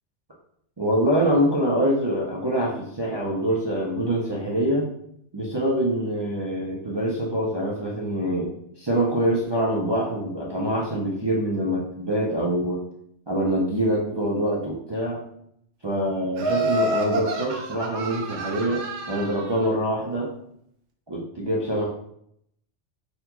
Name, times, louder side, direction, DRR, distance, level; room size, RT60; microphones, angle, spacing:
voice 1, 0.8-4.9 5.3-8.5 8.8-12.8 13.3-15.2 15.8-20.3 21.1-21.8, right 1 dB, 40° right, -6 dB, 0.4 m, -25 dB
Laughter, 16.4-19.6, right 1 dB, 75° right, 0.9 m, -28 dB
3.9 x 2.2 x 2.8 m, 0.71 s
omnidirectional pair, 1.2 m